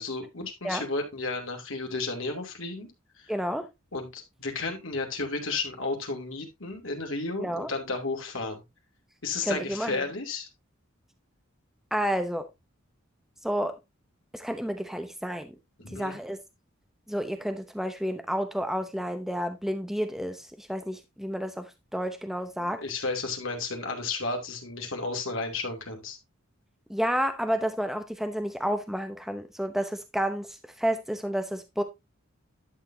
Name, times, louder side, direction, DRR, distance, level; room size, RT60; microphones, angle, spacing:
voice 1, 0.0-2.9 3.2-3.3 3.9-8.6 9.2-10.5 15.8-16.2 22.6-26.2, left 3 dB, 70° left, 2.6 m, -33 dB
voice 2, 3.3-3.7 7.4-7.7 9.4-10.0 11.9-12.5 13.4-13.8 14.3-15.5 15.9-16.4 17.1-22.8 26.9-31.8, equal, ahead, 0.7 m, -30 dB
11.0 x 6.9 x 2.7 m
head